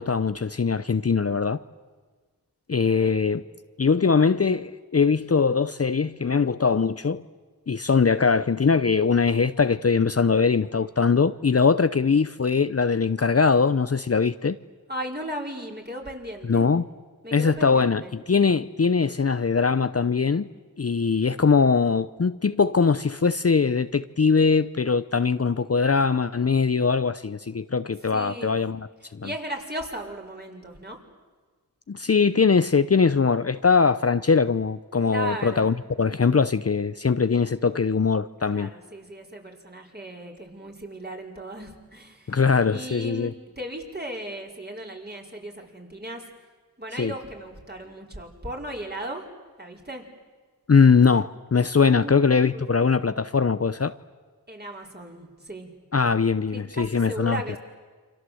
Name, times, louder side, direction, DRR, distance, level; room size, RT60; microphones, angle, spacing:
voice 1, 0.0-1.6 2.7-3.4 3.8-7.2 7.7-14.6 16.5-16.9 17.3-20.5 20.8-28.9 29.1-29.3 31.9-38.7 42.3-43.3 47.0-47.1 50.7-53.9 55.9-57.4, left 5 dB, 40° left, 0.7 m, -21 dB
voice 2, 2.7-3.2 14.9-16.7 17.2-18.2 28.1-28.6 29.0-31.0 35.0-35.7 38.5-42.4 42.7-46.3 46.8-49.2 49.6-50.1 51.6-52.7 54.5-55.7 56.5-57.6, right 1 dB, 25° right, 5.2 m, -37 dB
28.5 x 25.5 x 7.9 m
wide cardioid pair, 50°, 36 cm